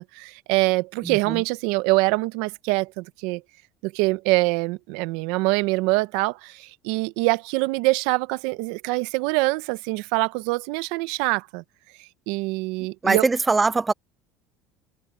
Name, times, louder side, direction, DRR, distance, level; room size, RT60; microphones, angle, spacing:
voice 1, 0.0-3.4 3.8-11.6 12.3-13.3, right 23 dB, 70° right, 0.6 m, -24 dB
voice 2, 1.0-1.4 13.0-13.9, right 3 dB, 10° right, 0.4 m, -22 dB
cardioid pair, 165°, 0 cm